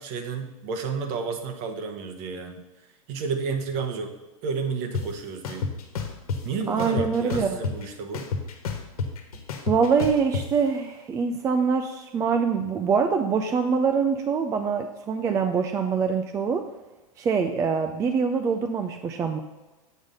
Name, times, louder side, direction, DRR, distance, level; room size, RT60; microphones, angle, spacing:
voice 1, 0.0-2.6 3.1-4.1 4.4-5.7 6.4-8.3, right 5 dB, 45° right, 6 dB, 1.1 m, -31 dB
sound 1, 4.9-5.0 5.4-6.4 6.8-7.9 8.1-10.4, left 5 dB, 80° left, 1.3 m, -29 dB
voice 2, 6.7-7.5 9.7-16.6 17.2-19.4, right 5 dB, 15° right, 6 dB, 0.4 m, -24 dB
8.0 x 3.9 x 5.2 m, 1.2 s
hypercardioid pair, 125°, 19 cm